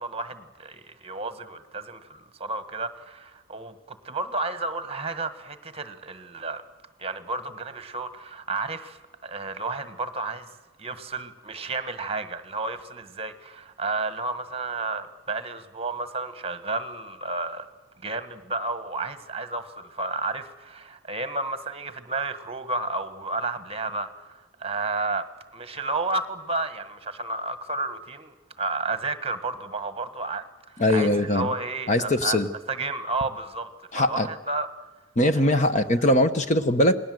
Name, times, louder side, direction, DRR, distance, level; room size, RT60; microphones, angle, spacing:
voice 1, 0.0-6.6 7.0-10.4 10.8-17.7 18.0-25.3 25.5-32.4 32.7-33.7 33.9-34.7 35.3-35.6, right 3 dB, 30° right, 1.4 m, -32 dB
voice 2, 30.8-31.5 31.9-32.5 33.9-34.3 35.2-36.9, left 1 dB, 35° left, 1.0 m, -21 dB
28.0 x 19.5 x 7.8 m
head